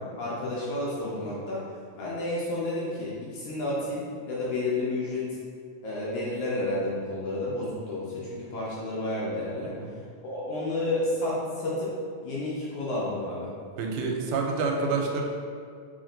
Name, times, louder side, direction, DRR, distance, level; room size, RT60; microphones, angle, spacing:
voice 1, 0.0-1.6 1.9-5.3 5.8-9.8 10.2-11.9 12.2-13.5, left 2 dB, 70° left, -6 dB, 1.6 m, -31 dB
voice 2, 13.8-15.2, right 4 dB, 90° right, 1 dB, 2.0 m, -28 dB
4.3 x 3.1 x 3.8 m, 2.2 s
omnidirectional pair, 3.4 m